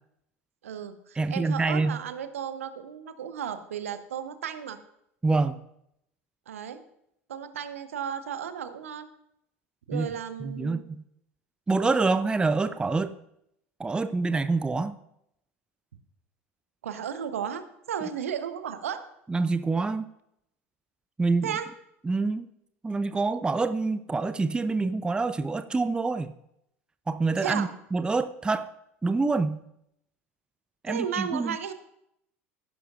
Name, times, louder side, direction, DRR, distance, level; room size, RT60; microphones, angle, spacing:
voice 1, 0.6-4.8 6.5-6.8 7.3-9.1 9.9-10.8 16.8-19.1 21.4-21.7 27.4-27.7 30.9-31.7, right 8 dB, 70° right, 11 dB, 0.8 m, -34 dB
voice 2, 1.2-2.0 5.2-5.6 9.9-10.1 10.4-11.0 11.7-13.1 13.8-15.0 19.3-20.1 21.2-21.6 22.0-22.5 22.8-26.3 27.1-28.7 29.0-29.6 30.8-31.6, right 3 dB, 10° right, 12 dB, 0.5 m, -26 dB
15.0 x 11.0 x 2.5 m, 0.77 s
figure-of-eight pair, 75°, 8 cm